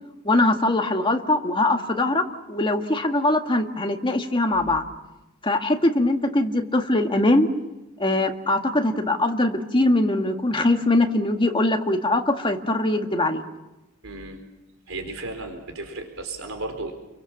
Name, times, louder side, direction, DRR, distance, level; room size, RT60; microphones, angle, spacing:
voice 1, 0.2-4.8 5.4-7.5 8.0-13.4, left 2 dB, 25° left, 4 dB, 1.9 m, -22 dB
voice 2, 14.0-14.4 14.9-16.9, right 2 dB, 75° right, 5 dB, 4.1 m, -34 dB
30.0 x 23.5 x 7.4 m, 1.0 s
head